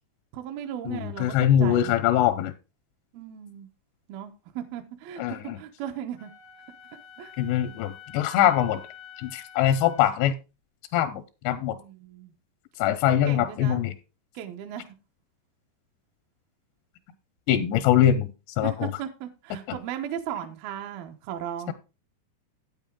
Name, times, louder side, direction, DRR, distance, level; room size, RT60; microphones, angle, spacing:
voice 1, 0.3-1.4 1.6-2.0 3.1-3.7 4.1-6.3 7.2-7.3 11.8-12.3 13.1-13.8 14.3-15.0 18.6-21.7, right 10 dB, 75° right, 2.2 m, -36 dB
voice 2, 0.9-2.5 5.2-5.6 7.4-8.8 9.2-10.3 10.9-11.8 12.8-13.9 17.5-18.3 18.6-18.9 19.5-19.8 21.7-21.8, left 10 dB, 85° left, 2.5 m, -23 dB
Wind instrument woodwind instrument, 6.2-10.2, left 9 dB, 70° left, 1.0 m, -48 dB
9.1 x 8.9 x 3.7 m
omnidirectional pair, 5.7 m